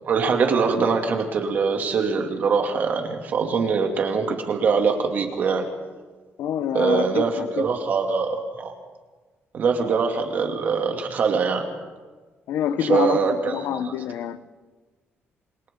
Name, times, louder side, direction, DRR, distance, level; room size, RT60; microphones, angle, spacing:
voice 1, 0.1-5.6 6.7-8.7 9.5-11.6 12.8-13.9, right 5 dB, 45° right, 2.7 m, -23 dB
voice 2, 6.4-7.7 12.5-13.2 13.5-14.5, left 9 dB, 80° left, 0.9 m, -26 dB
28.0 x 26.0 x 3.9 m
cardioid pair, 175°, 4 cm